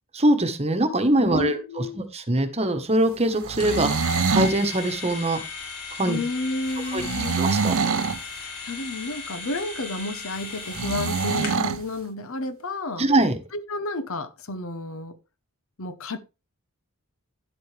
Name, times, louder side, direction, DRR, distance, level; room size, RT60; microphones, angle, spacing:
voice 1, 0.1-1.6 2.0-5.4 6.0-6.2 6.9-7.0 7.3-7.7 13.0-13.4, right 1 dB, 30° right, 1.3 m, -22 dB
voice 2, 1.2-2.0 6.1-7.4 8.6-13.1 13.5-15.2 15.8-16.2, left 2 dB, 60° left, 0.9 m, -31 dB
sound 1, 3.3-4.6 6.9-8.2 10.7-11.8, right 5 dB, 60° right, 0.6 m, -25 dB
sound 2, 3.6-11.8, left 4 dB, 85° left, 3.3 m, -37 dB
11.0 x 7.8 x 3.3 m
head